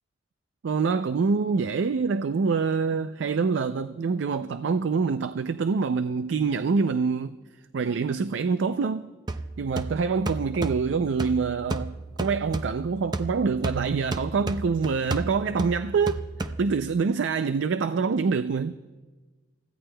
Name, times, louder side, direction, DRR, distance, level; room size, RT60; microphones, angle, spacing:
voice 1, 0.6-7.4 7.7-9.1 9.6-16.2 16.6-18.7, right 5 dB, 80° right, 0.4 m, -25 dB
sound 1, 9.3-17.0, right 2 dB, 20° right, 0.5 m, -33 dB
29.0 x 15.5 x 2.2 m
head